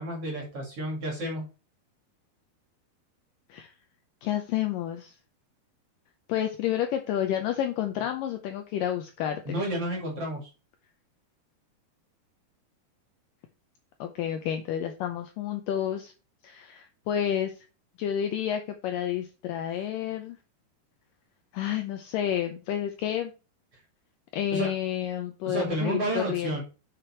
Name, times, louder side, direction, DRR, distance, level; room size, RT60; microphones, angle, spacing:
voice 1, 0.0-1.5 9.5-10.5 24.5-24.7 25.4-26.6, right 1 dB, 45° right, 0 dB, 2.7 m, -31 dB
voice 2, 4.2-5.2 6.3-9.6 14.0-16.1 16.4-17.7 18.0-20.4 21.5-23.3 24.3-26.6, left 10 dB, 80° left, 5 dB, 2.0 m, -30 dB
6.7 x 5.8 x 4.4 m, 0.33 s
omnidirectional pair, 4.6 m